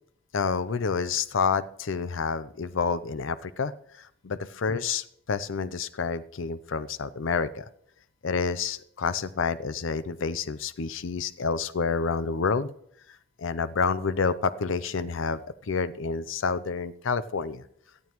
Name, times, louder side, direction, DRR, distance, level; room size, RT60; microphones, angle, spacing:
voice 1, 0.3-3.7 4.0-7.7 8.2-12.7 13.4-17.6, left 5 dB, 80° left, 14 dB, 0.6 m, -29 dB
18.5 x 13.0 x 3.0 m, 0.69 s
head